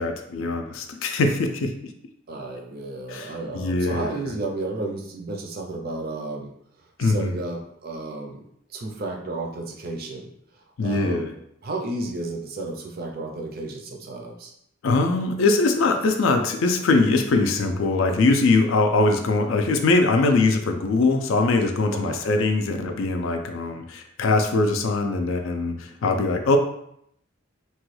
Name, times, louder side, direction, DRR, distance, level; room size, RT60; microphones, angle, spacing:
voice 1, 0.0-1.7 3.1-4.2 7.0-7.4 10.8-11.3 14.8-26.6, left 3 dB, 70° left, 6 dB, 0.4 m, -22 dB
voice 2, 2.3-6.5 6.8-8.4 8.7-10.3 10.8-11.4 11.6-14.5 21.9-22.2, right 2 dB, 45° right, 2 dB, 0.4 m, -32 dB
3.0 x 2.2 x 3.1 m, 0.72 s
head